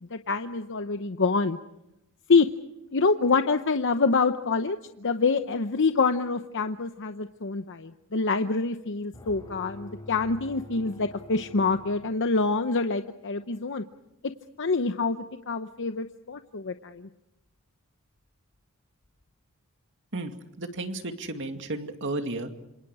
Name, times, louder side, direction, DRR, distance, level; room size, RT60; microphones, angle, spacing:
voice 1, 0.0-1.6 2.3-2.5 2.9-13.8 14.6-17.1, left 4 dB, 60° left, 8 dB, 0.9 m, -26 dB
sound 1, 9.1-12.7, left 1 dB, 15° left, 4.9 m, -46 dB
voice 2, 20.1-22.5, right 2 dB, 60° right, 6 dB, 2.4 m, -33 dB
27.5 x 27.0 x 4.9 m, 0.91 s
head